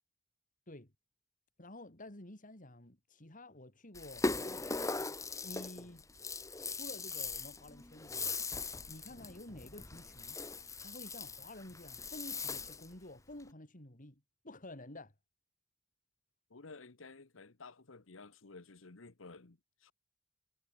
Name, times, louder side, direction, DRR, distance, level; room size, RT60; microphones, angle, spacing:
voice 1, 1.6-4.7 5.4-6.0 6.7-8.4 8.9-10.4 10.8-15.1, left 1 dB, 45° left, 4.1 m, -51 dB
Rattle (instrument), 3.9-12.9, left 3 dB, 15° left, 1.0 m, -40 dB
voice 2, 16.5-19.9, left 3 dB, 85° left, 1.3 m, -54 dB
head